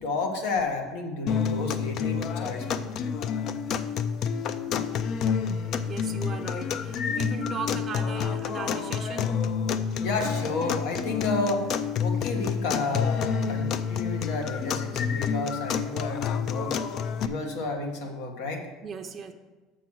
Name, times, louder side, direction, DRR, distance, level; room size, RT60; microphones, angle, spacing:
voice 1, 0.0-3.0 10.0-11.7 12.0-16.7 17.2-18.7, left 3 dB, 80° left, 4 dB, 1.4 m, -31 dB
sound 1, 1.3-17.3, left 7 dB, 45° left, 0.4 m, -29 dB
voice 2, 5.9-9.6 18.8-19.3, right 5 dB, 25° right, 4 dB, 0.5 m, -37 dB
7.0 x 6.0 x 6.1 m, 1.2 s
cardioid pair, 145°, 0 cm